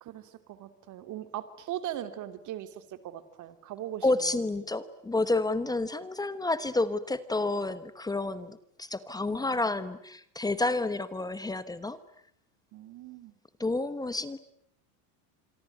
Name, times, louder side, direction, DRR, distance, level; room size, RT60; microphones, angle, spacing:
voice 1, 0.0-4.0 9.3-9.6 12.7-13.3, right 12 dB, 40° right, 11 dB, 2.9 m, -40 dB
voice 2, 4.0-12.0 13.6-14.4, left 2 dB, 10° left, 14 dB, 1.1 m, -30 dB
27.0 x 23.5 x 9.2 m, 0.67 s
supercardioid pair, 140°, 47 cm